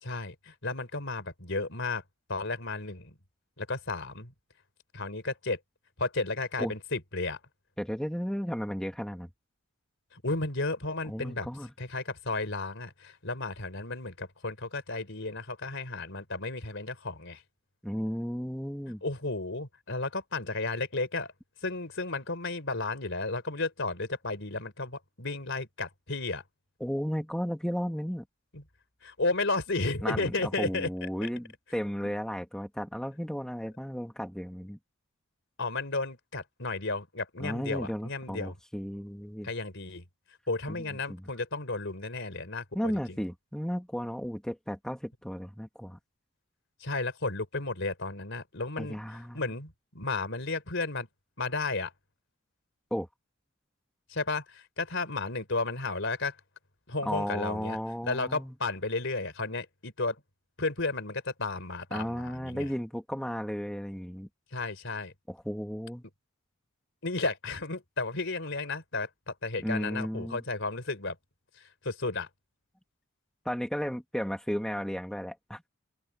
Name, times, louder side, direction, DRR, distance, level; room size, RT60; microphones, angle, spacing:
voice 1, 0.0-2.0 2.3-3.2 3.6-4.3 4.9-5.6 6.0-7.4 10.1-11.5 11.8-17.4 19.0-21.3 21.6-26.4 28.5-28.6 29.0-30.9 31.2-31.3 32.0-32.1 35.6-38.6 39.4-40.1 40.5-43.2 46.8-51.1 51.4-51.9 54.1-56.4 56.9-57.8 58.0-60.2 60.6-62.7 64.5-65.1 67.0-71.2 71.5-72.3, left 3 dB, 60° left, 4.0 m, -33 dB
voice 2, 7.8-9.3 11.1-11.7 17.8-19.0 26.8-28.2 30.0-34.8 37.4-39.5 40.7-40.8 41.1-41.2 42.7-46.0 48.8-49.4 52.9-53.1 57.0-58.5 61.9-64.3 65.3-66.0 69.6-70.4 73.5-75.7, equal, 5° left, 1.8 m, -34 dB
open air
head